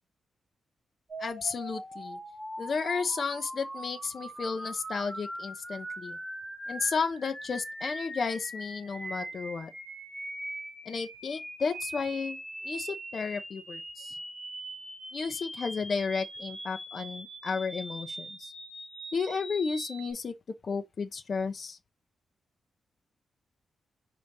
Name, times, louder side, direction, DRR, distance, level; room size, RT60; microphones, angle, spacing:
sound 1, 1.1-20.1, right 1 dB, 10° right, 3.5 m, -41 dB
voice 1, 1.2-2.2 2.6-6.2 6.7-9.7 10.9-14.2 15.1-18.5 19.1-20.3 20.6-21.8, left 5 dB, 40° left, 0.8 m, -33 dB
5.1 x 4.0 x 4.7 m
wide cardioid pair, 165°, 0 cm